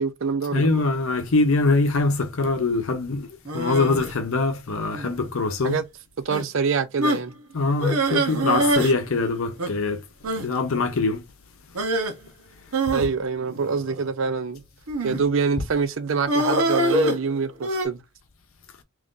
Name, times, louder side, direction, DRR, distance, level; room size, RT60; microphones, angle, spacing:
voice 1, 0.0-0.7 5.6-5.8 6.2-7.3 12.9-14.6 15.0-18.0, right 5 dB, 60° right, 0.5 m, -25 dB
voice 2, 0.5-5.8 7.5-10.0 10.4-11.2 15.1-15.2, left 3 dB, 70° left, 0.7 m, -23 dB
sound 1, 3.5-4.1 4.9-5.3 5.6-5.8 6.3-6.4 7.0-7.3 7.8-9.0 9.2-9.3 9.6-9.7 10.2-10.5 11.7-12.1 12.7-14.1 14.9-15.3 16.3-17.9, right 1 dB, 85° right, 0.9 m, -24 dB
3.0 x 2.5 x 3.7 m
head